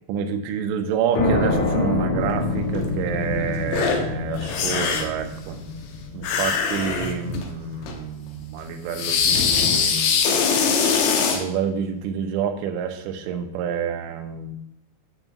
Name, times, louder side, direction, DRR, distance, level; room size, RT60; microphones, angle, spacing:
voice 1, 0.1-5.6 6.1-10.3 11.3-14.6, right 7 dB, 80° right, 5 dB, 3.3 m, -28 dB
sound 1, 1.2-8.5, left 2 dB, 90° left, 4.9 m, -27 dB
sound 2, 2.8-2.9 3.7-4.0 4.3-5.2 6.2-7.5 7.8-8.0 8.9-11.4, left 6 dB, 70° left, 2.7 m, -22 dB
9.8 x 4.5 x 6.9 m, 0.81 s
omnidirectional pair, 5.9 m